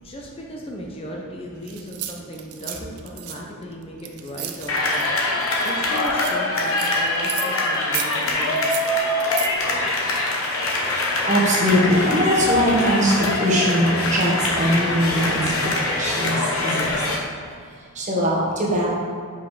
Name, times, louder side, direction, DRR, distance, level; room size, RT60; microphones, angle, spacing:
voice 1, 0.0-8.7, equal, 25° left, -1 dB, 0.6 m, -36 dB
sound 1, 1.7-5.1 5.4-7.7 7.9-9.5, right 11 dB, 90° right, 0.5 m, -33 dB
sound 2, 4.7-17.2, left 2 dB, 70° left, 1.1 m, -23 dB
voice 2, 11.3-17.0 17.9-18.9, equal, 35° right, -3 dB, 1.2 m, -21 dB
5.4 x 5.0 x 4.8 m, 2.1 s
head